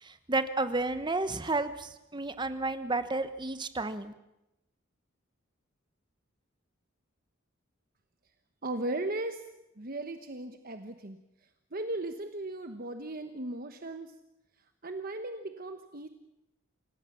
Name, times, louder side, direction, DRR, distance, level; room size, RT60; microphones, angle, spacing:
voice 1, 0.0-4.1, right 3 dB, 20° right, 11 dB, 1.1 m, -31 dB
voice 2, 8.6-9.4 9.8-11.2 11.7-14.1 14.8-16.1, right 2 dB, 45° right, 7 dB, 1.1 m, -36 dB
27.5 x 17.0 x 7.2 m, 0.92 s
head